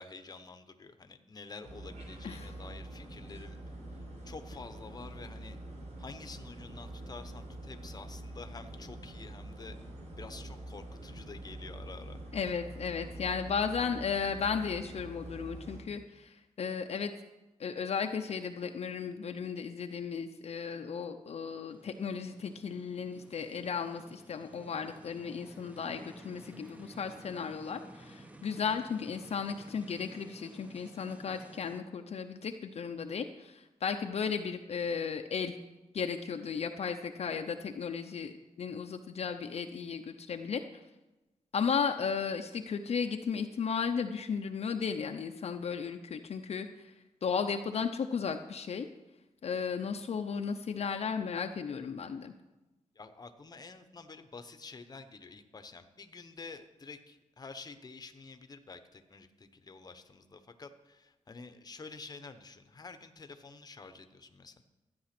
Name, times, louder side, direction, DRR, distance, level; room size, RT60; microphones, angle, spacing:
voice 1, 0.0-3.6 4.2-5.6 6.0-9.7 10.2-12.2 52.9-64.6, left 4 dB, 30° left, 9 dB, 1.0 m, -49 dB
sound 1, 1.6-15.8, right 1 dB, 70° right, 4.2 m, -45 dB
voice 2, 12.3-17.1 17.6-35.6 35.9-40.6 41.5-46.9 47.2-48.9 49.4-52.3, left 6 dB, 55° left, 5 dB, 0.7 m, -35 dB
sound 2, 21.7-31.8, right 1 dB, 10° right, 0.9 m, -53 dB
13.0 x 9.5 x 6.0 m, 1.1 s
wide cardioid pair, 130°, 13 cm